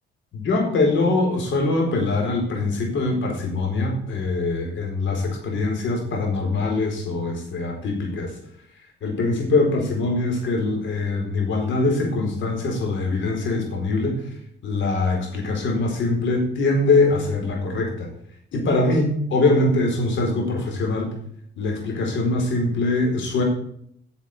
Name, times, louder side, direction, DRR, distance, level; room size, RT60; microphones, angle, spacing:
voice 1, 0.3-8.3 9.0-14.1 14.6-18.1 18.5-21.1 21.6-23.4, left 2 dB, 70° left, 2 dB, 4.5 m, -23 dB
9.9 x 7.2 x 8.2 m, 0.68 s
cardioid pair, 90°, 20 cm